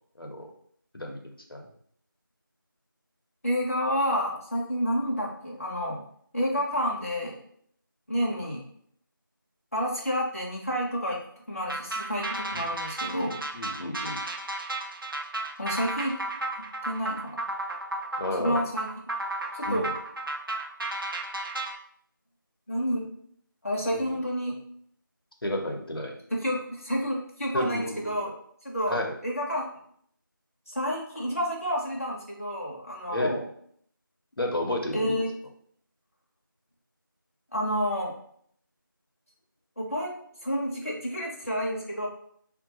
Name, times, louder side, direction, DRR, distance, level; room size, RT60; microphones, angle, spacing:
voice 1, 0.2-0.5 0.9-1.7 12.5-12.6 13.5-14.2 18.2-18.6 19.7-19.9 23.9-24.0 25.4-26.1 27.5-28.2 28.9-29.2 33.1-33.4 34.4-35.2, left 1 dB, 90° left, 1 dB, 0.7 m, -32 dB
voice 2, 3.4-6.0 6.3-7.4 8.1-8.7 9.7-11.2 11.5-13.4 15.6-16.2 16.8-17.4 18.4-18.9 19.5-19.9 22.7-23.1 23.6-24.6 26.3-28.3 28.6-29.7 30.7-33.5 34.9-35.3 37.5-38.1 39.8-40.1 40.4-42.1, equal, 40° left, -3 dB, 0.7 m, -29 dB
sound 1, 11.7-21.8, right 2 dB, 70° right, 0.5 m, -33 dB
3.8 x 2.2 x 2.8 m, 0.64 s
figure-of-eight pair, 180°, 12 cm